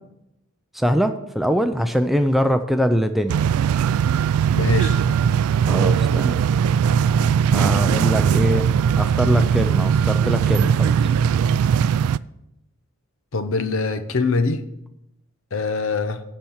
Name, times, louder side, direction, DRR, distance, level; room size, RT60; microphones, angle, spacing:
voice 1, 0.7-3.4 5.7-6.4 7.5-8.6 9.0-10.9, equal, ahead, 8 dB, 0.4 m, -22 dB
sound 1, 3.3-12.2, right 7 dB, 85° right, 0.3 m, -19 dB
voice 2, 4.6-5.0 13.3-14.6 15.5-16.2, left 4 dB, 65° left, 10 dB, 0.8 m, -23 dB
12.0 x 4.4 x 7.2 m, 0.85 s
head